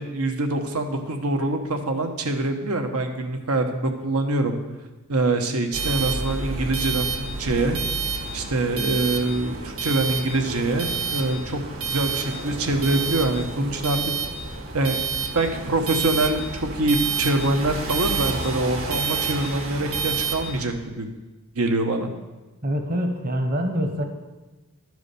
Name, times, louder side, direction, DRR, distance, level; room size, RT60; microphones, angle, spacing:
voice 1, 0.0-4.6 5.1-7.8 8.3-11.6 11.9-14.0 14.7-15.0 15.3-21.1 21.6-22.1, right 2 dB, 85° right, 5 dB, 1.1 m, -24 dB
sound 1, 5.7-20.7, right 4 dB, 65° right, 1.7 m, -29 dB
voice 2, 22.6-24.0, equal, 40° right, 4 dB, 1.1 m, -25 dB
12.0 x 4.8 x 6.8 m, 1.1 s
head